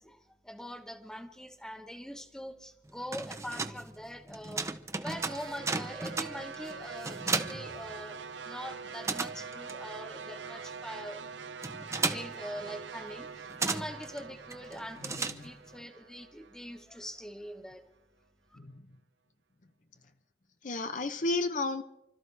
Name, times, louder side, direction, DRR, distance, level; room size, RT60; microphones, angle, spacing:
voice 1, 0.0-4.7 5.0-8.2 8.4-11.2 11.8-17.8 18.5-18.6, equal, 5° left, 1.1 m, -43 dB
sound 1, 2.9-8.5 8.7-15.8, right 3 dB, 15° right, 0.6 m, -36 dB
sound 2, 5.0-17.3, right 5 dB, 85° right, 0.6 m, -44 dB
voice 2, 15.0-15.5 18.6-18.8 20.6-21.8, left 2 dB, 45° left, 0.7 m, -33 dB
29.5 x 13.0 x 3.3 m
head